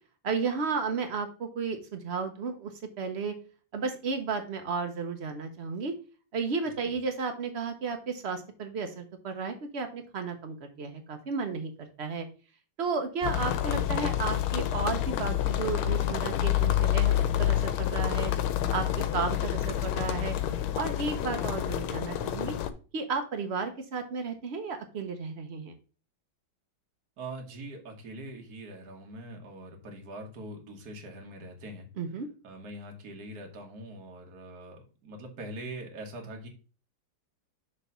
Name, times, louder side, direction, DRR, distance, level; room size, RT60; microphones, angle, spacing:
voice 1, 0.2-2.7 3.0-3.3 3.7-5.9 6.3-12.3 12.8-18.3 18.7-20.3 20.8-22.5 22.9-25.7 32.0-32.3, right 5 dB, 85° right, 6 dB, 0.5 m, -33 dB
sound 1, 13.2-22.7, left 11 dB, 90° left, 1.5 m, -28 dB
voice 2, 27.2-31.9 32.4-36.5, right 1 dB, 50° right, 1 dB, 1.8 m, -43 dB
6.4 x 3.4 x 5.4 m, 0.37 s
omnidirectional pair, 2.2 m